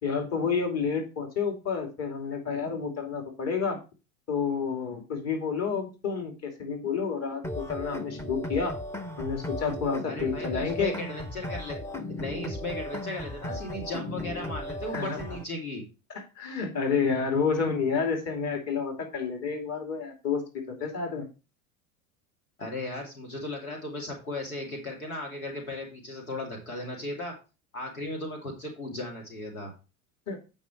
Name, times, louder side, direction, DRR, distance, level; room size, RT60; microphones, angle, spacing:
voice 1, 0.0-3.8 4.3-8.8 9.2-10.9 14.9-15.2 16.4-20.4 20.7-21.3 30.3-30.4, left 5 dB, 40° left, 3 dB, 2.9 m, -29 dB
sound 1, 7.4-15.4, left 1 dB, 5° left, 0.7 m, -36 dB
voice 2, 10.0-11.8 12.1-15.8 22.6-27.3 27.7-29.7, left 1 dB, 85° left, 1 dB, 2.5 m, -36 dB
8.4 x 5.3 x 4.5 m, 0.30 s
hypercardioid pair, 80°, 42 cm